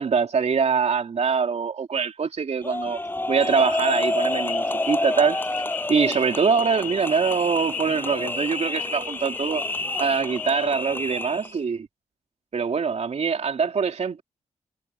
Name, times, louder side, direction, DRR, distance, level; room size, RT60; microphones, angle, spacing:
voice 1, 0.0-3.0 3.3-5.4 5.9-9.6 10.0-11.9 12.5-14.2, right 5 dB, 60° right, 3.2 m, -23 dB
sound 1, 2.6-11.6, left 2 dB, 15° left, 7.9 m, -29 dB
sound 2, 3.5-10.7, left 9 dB, 85° left, 5.8 m, -36 dB
cardioid pair, 85°, 13 cm